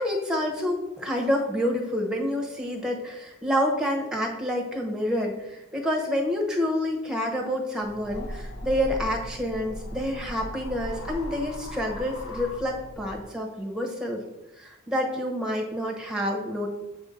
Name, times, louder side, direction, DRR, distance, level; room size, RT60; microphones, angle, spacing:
voice 1, 0.0-14.2 14.6-16.7, equal, 5° right, -1 dB, 0.9 m, -28 dB
sound 1, 7.8-13.2, equal, 70° left, 0.8 m, -38 dB
7.4 x 2.6 x 5.0 m, 0.95 s
head